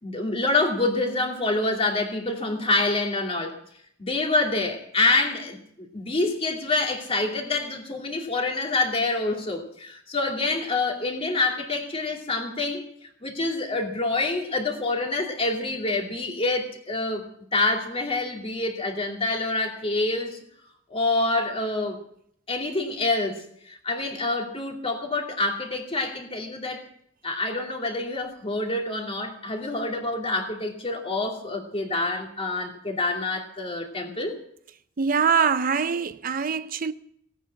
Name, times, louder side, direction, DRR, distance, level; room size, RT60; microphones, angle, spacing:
voice 1, 0.0-3.6 4.0-12.8 13.2-17.2 17.5-20.4 20.9-22.0 22.5-26.8 27.2-34.4, left 2 dB, 30° left, 2.6 m, -27 dB
voice 2, 35.0-36.9, right 6 dB, 45° right, 0.5 m, -23 dB
17.0 x 9.1 x 8.6 m
head